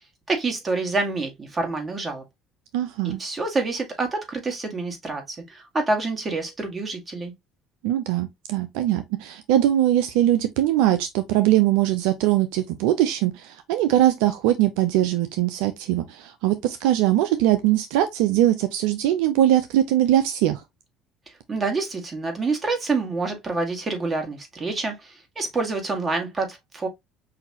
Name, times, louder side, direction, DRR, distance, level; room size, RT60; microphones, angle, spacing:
voice 1, 0.3-2.2 3.0-7.3 21.5-26.9, right 3 dB, 30° right, 1.8 m, -27 dB
voice 2, 2.7-3.2 7.8-20.6, right 13 dB, 80° right, 0.4 m, -21 dB
5.7 x 2.7 x 2.8 m
hypercardioid pair, 75°, 0 cm